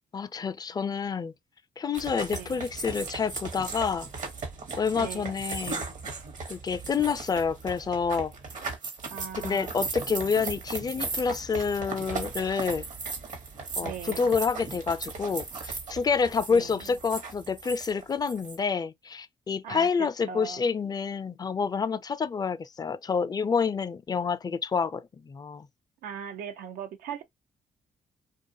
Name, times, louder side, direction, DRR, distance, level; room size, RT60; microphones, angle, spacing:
voice 1, 0.1-1.3 1.8-4.1 4.8-5.8 6.5-8.3 9.3-12.8 13.8-25.7, left 5 dB, 30° left, 0.4 m, -28 dB
sound 1, 1.9-18.6, right 4 dB, 65° right, 1.0 m, -37 dB
voice 2, 2.3-2.7 5.0-5.3 9.1-9.8 13.8-14.3 16.5-17.0 19.6-20.7 26.0-27.2, right 8 dB, 85° right, 0.5 m, -39 dB
2.4 x 2.3 x 2.7 m
cardioid pair, 70°, 14 cm